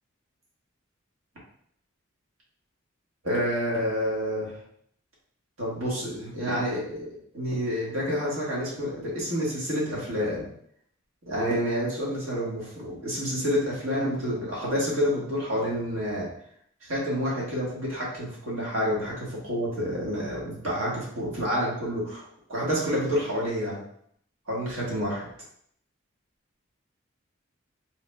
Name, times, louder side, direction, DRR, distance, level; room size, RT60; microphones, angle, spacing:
voice 1, 3.2-4.6 5.6-7.1 7.3-10.4 11.3-16.3 16.8-23.8 24.5-25.3, equal, 80° right, -5 dB, 1.4 m, -28 dB
3.9 x 2.9 x 2.2 m, 0.67 s
head